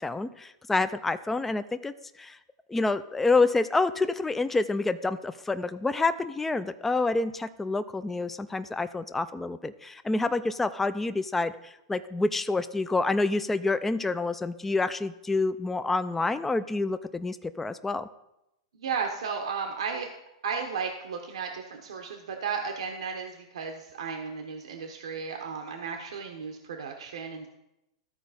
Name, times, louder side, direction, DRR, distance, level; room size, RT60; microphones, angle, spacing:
voice 1, 0.0-1.9 2.2-2.4 2.7-18.1, left 3 dB, 10° left, 11 dB, 0.3 m, -28 dB
voice 2, 18.8-20.1 20.4-27.5, right 5 dB, 85° right, 3 dB, 0.9 m, -34 dB
14.0 x 4.6 x 4.1 m, 0.87 s
hypercardioid pair, 130°, 3 cm